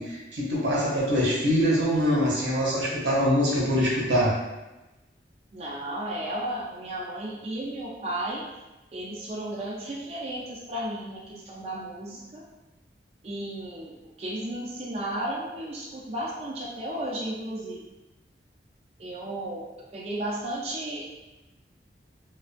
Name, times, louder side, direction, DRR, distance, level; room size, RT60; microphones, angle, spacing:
voice 1, 0.0-4.4, equal, 85° right, -5 dB, 0.8 m, -24 dB
voice 2, 5.5-8.5 8.9-12.4 13.2-13.9 14.2-17.8 19.0-19.6 19.9-21.0, right 1 dB, 35° right, -6 dB, 0.3 m, -34 dB
2.4 x 2.2 x 2.4 m, 1.0 s
head